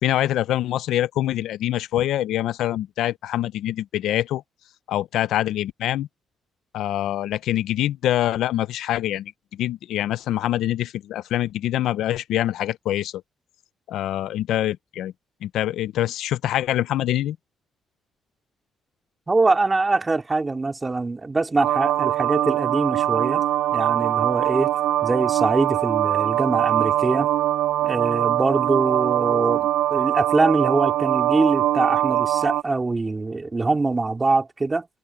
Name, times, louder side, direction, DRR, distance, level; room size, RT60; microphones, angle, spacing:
voice 1, 0.0-4.4 4.9-6.1 6.7-13.1 13.9-15.1 15.4-17.4, left 13 dB, 80° left, 0.6 m, -25 dB
voice 2, 19.3-23.4 23.7-24.7 25.0-27.3 27.8-34.9, right 3 dB, 25° right, 3.4 m, -23 dB
sound 1, 21.6-32.6, right 13 dB, 80° right, 0.4 m, -22 dB
cardioid pair, 90°, 0 cm